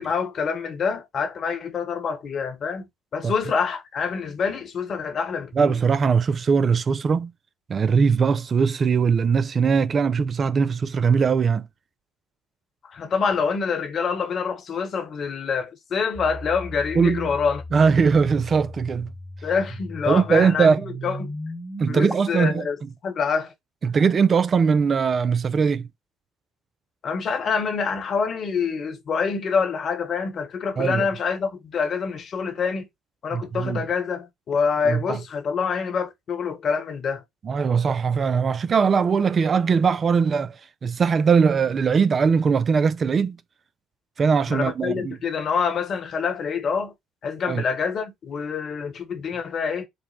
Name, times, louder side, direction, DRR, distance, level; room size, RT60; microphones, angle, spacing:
voice 1, 0.0-2.9 3.1-5.8 12.8-17.6 19.4-21.3 21.9-22.8 23.0-23.5 27.0-32.9 33.2-37.2 44.5-46.9 47.2-49.9, left 5 dB, 50° left, 1.1 m, -26 dB
voice 2, 5.6-7.3 7.7-11.6 17.0-17.3 17.7-19.1 20.1-20.8 21.8-22.7 23.8-25.9 30.8-31.1 33.3-33.8 34.8-35.2 37.5-43.4 44.2-45.2 47.5-47.6, right 5 dB, 40° right, 0.3 m, -20 dB
sound 1, 16.1-22.1, equal, 10° right, 1.0 m, -36 dB
5.2 x 2.1 x 4.2 m
hypercardioid pair, 60°, 0 cm